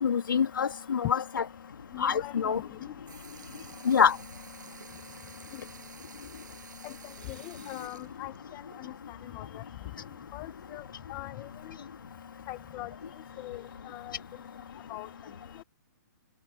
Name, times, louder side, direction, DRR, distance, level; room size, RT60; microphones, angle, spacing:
voice 1, 0.0-1.4 2.0-2.6 3.8-4.2, left 7 dB, 85° left, 2.6 m, -25 dB
voice 2, 1.9-3.7 5.5-5.7 6.8-11.8 12.5-14.4 14.7-15.6, left 19 dB, 20° left, 1.0 m, -43 dB
Sink (filling or washing) / Liquid, 2.6-2.7 3.1-9.2 9.5-9.6 11.2-11.3 12.2-12.3 13.1-13.3 14.1-14.2, right 7 dB, 65° right, 6.6 m, -51 dB
hypercardioid pair, 170°, 11 cm